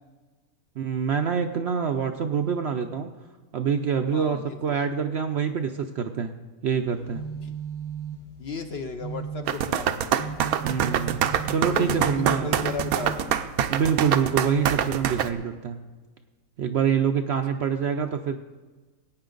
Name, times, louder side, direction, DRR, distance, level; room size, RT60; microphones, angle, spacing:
voice 1, 0.8-3.1 3.5-6.3 6.6-7.2 10.6-12.5 13.7-15.8 16.6-18.4, right 7 dB, 65° right, 6 dB, 0.7 m, -26 dB
voice 2, 4.1-4.8 7.4-7.6 8.4-10.2 11.7-13.4, left 4 dB, 55° left, 6 dB, 0.8 m, -35 dB
sound 1, 6.9-13.8, right 6 dB, 80° left, 2.8 m, -36 dB
sound 2, 9.5-15.3, right 9 dB, 80° right, 1.1 m, -25 dB
19.0 x 8.9 x 3.8 m, 1.3 s
omnidirectional pair, 1.5 m